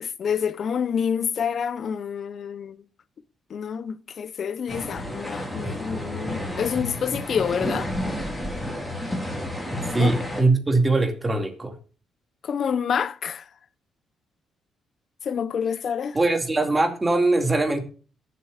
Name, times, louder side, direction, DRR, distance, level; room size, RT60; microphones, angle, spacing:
voice 1, 0.0-2.8 3.5-7.9 10.0-10.1 12.4-13.4 15.3-16.2, left 7 dB, 55° left, 0.8 m, -27 dB
sound 1, 4.7-10.4, left 1 dB, 5° left, 4.5 m, -31 dB
voice 2, 9.9-11.8 16.1-17.8, right 2 dB, 20° right, 2.3 m, -21 dB
22.0 x 7.7 x 2.5 m
cardioid pair, 90°, 0 cm